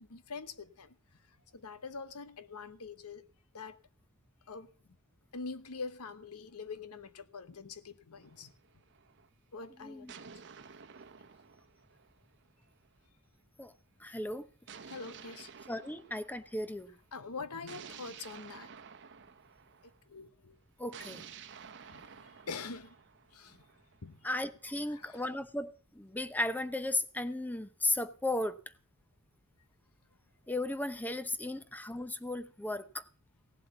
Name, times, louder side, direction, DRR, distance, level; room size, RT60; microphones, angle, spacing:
voice 1, 0.0-3.2 3.5-3.8 4.5-4.7 5.3-8.5 9.5-10.3 14.8-15.5 17.1-18.7 20.1-20.6 21.8-23.0 23.3-23.6 24.0-24.2 24.9-25.2, left 4 dB, 85° left, 1.0 m, -45 dB
sound 1, 8.2-9.3 10.1-12.7 14.7-16.8 17.7-20.0 20.9-24.7, right 6 dB, 55° right, 0.9 m, -52 dB
voice 2, 9.8-10.1 13.6-13.7 14.0-14.5 15.7-16.9 20.8-21.2 24.2-28.6 30.5-33.0, left 2 dB, 10° left, 0.8 m, -35 dB
17.0 x 7.8 x 6.9 m
head